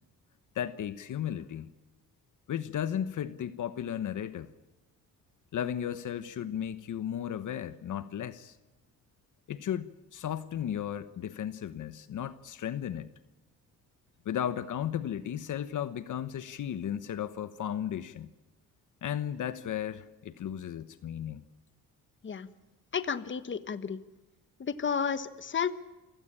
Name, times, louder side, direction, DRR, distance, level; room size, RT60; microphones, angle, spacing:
voice 1, 0.5-1.7 2.5-4.5 5.5-8.6 9.5-13.1 14.2-18.3 19.0-21.4, left 10 dB, 65° left, 13 dB, 1.2 m, -35 dB
voice 2, 22.9-24.0 24.6-25.7, left 6 dB, 35° left, 12 dB, 1.4 m, -32 dB
28.0 x 16.5 x 9.9 m, 1.1 s
cardioid pair, 110°, 33 cm